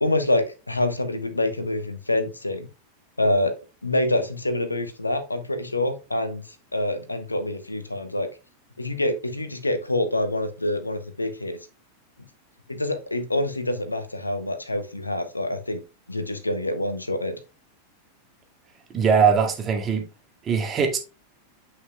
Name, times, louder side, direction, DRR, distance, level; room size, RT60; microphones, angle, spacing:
voice 1, 0.0-2.7 3.2-3.5 3.8-6.4 6.7-8.3 8.8-11.6 12.7-15.8 16.1-17.4, left 1 dB, 80° left, 1.1 m, -26 dB
voice 2, 18.9-20.1 20.4-21.0, right 6 dB, 25° right, 1.9 m, -21 dB
9.7 x 5.6 x 2.2 m
figure-of-eight pair, 90°, 0 cm